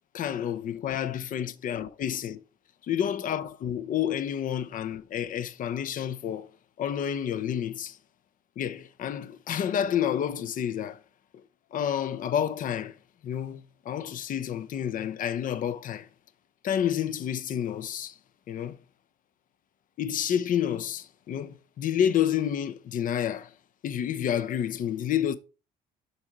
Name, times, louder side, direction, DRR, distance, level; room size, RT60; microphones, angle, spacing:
voice 1, 0.1-2.4 2.9-6.5 6.8-8.0 8.6-11.0 11.3-11.4 11.7-12.9 13.2-16.1 16.6-18.1 18.5-18.8 20.0-23.5 23.8-25.4, left 9 dB, 55° left, 0.7 m, -29 dB
6.9 x 4.6 x 4.9 m
cardioid pair, 110°, 17 cm